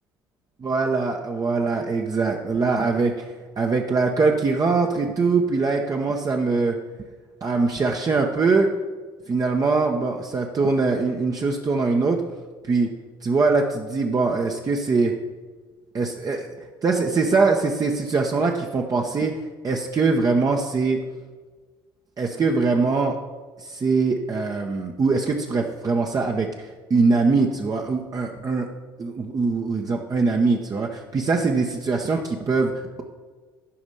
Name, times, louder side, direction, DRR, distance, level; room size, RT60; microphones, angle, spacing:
voice 1, 0.6-3.3 3.6-6.8 7.4-8.7 9.3-12.2 12.6-12.9 13.2-15.2 15.9-16.5 16.8-21.0 22.2-23.2 23.6-28.7 29.0-32.7, right 4 dB, 30° right, 1 dB, 0.8 m, -22 dB
11.5 x 5.2 x 5.4 m, 1.4 s
hypercardioid pair, 55°, 12 cm